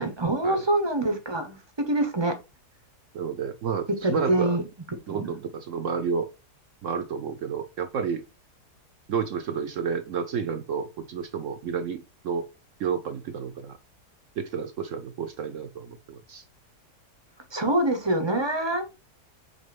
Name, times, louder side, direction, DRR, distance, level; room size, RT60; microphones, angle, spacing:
voice 1, 0.0-1.6 1.9-2.4 4.0-4.6 5.1-5.3 17.5-18.8, right 1 dB, 25° right, 0.6 m, -25 dB
voice 2, 3.1-4.6 5.1-6.3 6.8-8.2 9.1-12.5 12.8-13.8 14.4-16.4, right 6 dB, 60° right, 0.9 m, -30 dB
5.4 x 3.5 x 5.2 m
omnidirectional pair, 1.7 m